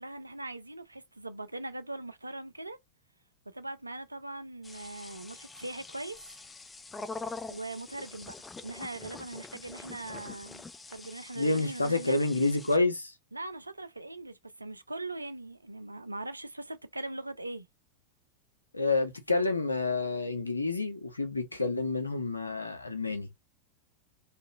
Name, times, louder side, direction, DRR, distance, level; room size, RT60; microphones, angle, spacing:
voice 1, 0.0-2.8 3.5-6.2 7.5-8.4 8.6-12.2 13.3-17.7, right 2 dB, 85° right, 0.3 m, -40 dB
sound 1, 4.6-12.8, left 3 dB, 15° left, 0.3 m, -45 dB
voice 2, 11.4-13.1 18.7-23.3, left 3 dB, 85° left, 0.6 m, -29 dB
2.8 x 2.3 x 2.2 m
figure-of-eight pair, 90°, 0 cm